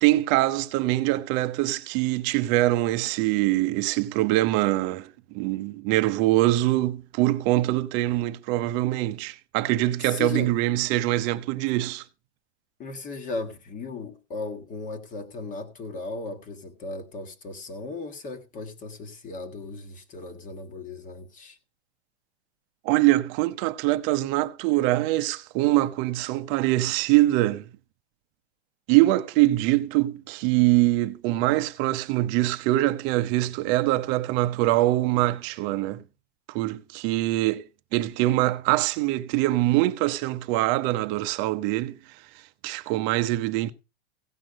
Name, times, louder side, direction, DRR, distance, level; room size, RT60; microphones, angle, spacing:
voice 1, 0.0-12.0 22.8-27.7 28.9-36.0 36.5-37.6 37.9-42.2 42.6-43.7, right 17 dB, 35° right, 0.8 m, -23 dB
voice 2, 10.0-10.5 12.8-21.6, left 3 dB, 20° left, 1.5 m, -36 dB
16.5 x 6.1 x 5.1 m
hypercardioid pair, 145°, 34 cm